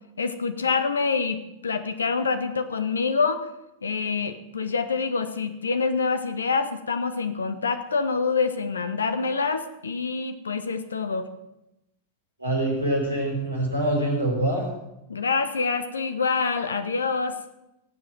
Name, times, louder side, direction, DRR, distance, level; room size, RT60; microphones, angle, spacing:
voice 1, 0.2-3.5 3.8-11.3 15.1-17.4, left 4 dB, 70° left, 11 dB, 1.1 m, -26 dB
voice 2, 12.4-14.6, right 1 dB, 85° right, -1 dB, 5.2 m, -25 dB
18.0 x 7.8 x 7.9 m, 0.89 s
figure-of-eight pair, 90°, 0 cm